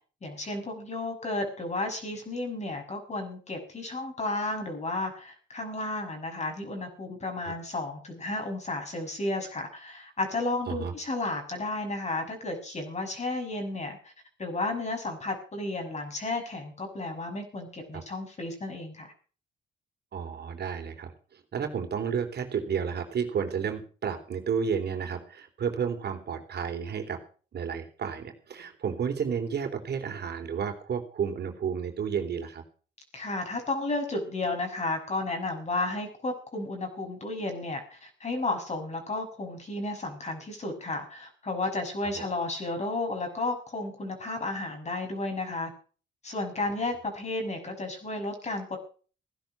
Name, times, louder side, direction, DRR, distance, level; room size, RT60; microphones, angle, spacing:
voice 1, 0.2-14.1 14.4-19.1 33.1-45.7 46.2-48.8, left 2 dB, 35° left, 4 dB, 6.4 m, -33 dB
voice 2, 20.1-21.1 21.5-27.2 27.5-32.6 42.2-42.3, right 7 dB, 55° right, 4 dB, 3.5 m, -31 dB
16.5 x 11.0 x 6.1 m, 0.40 s
cardioid pair, 90°, 20 cm